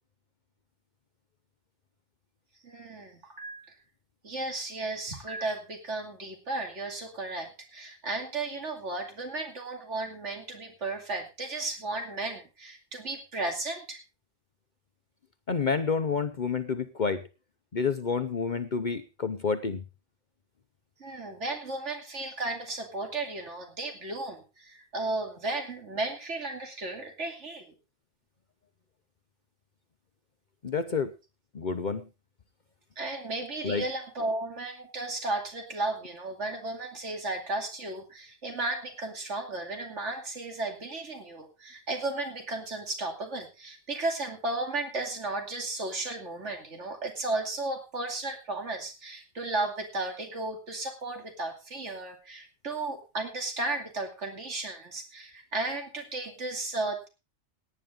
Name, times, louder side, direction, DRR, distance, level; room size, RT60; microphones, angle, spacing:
voice 1, 2.6-3.7 4.2-14.0 21.0-27.7 33.0-57.1, right 2 dB, 75° right, 3 dB, 2.8 m, -34 dB
voice 2, 15.5-17.2 17.7-19.8 30.6-31.1 31.5-32.1 33.6-33.8, left 5 dB, 45° left, 9 dB, 0.8 m, -29 dB
18.0 x 9.5 x 3.7 m, 0.29 s
omnidirectional pair, 1.2 m